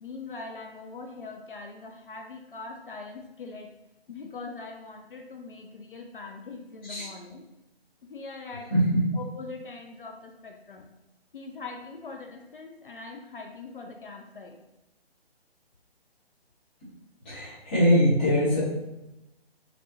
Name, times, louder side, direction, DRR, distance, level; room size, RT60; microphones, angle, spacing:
voice 1, 0.0-3.7 4.1-7.4 8.0-8.7 9.1-10.9 11.3-14.6, left 3 dB, 55° left, 2 dB, 0.4 m, -42 dB
voice 2, 8.7-9.0 17.2-18.6, equal, 10° left, -10 dB, 0.6 m, -22 dB
3.0 x 2.9 x 2.6 m, 0.93 s
figure-of-eight pair, 140°, 31 cm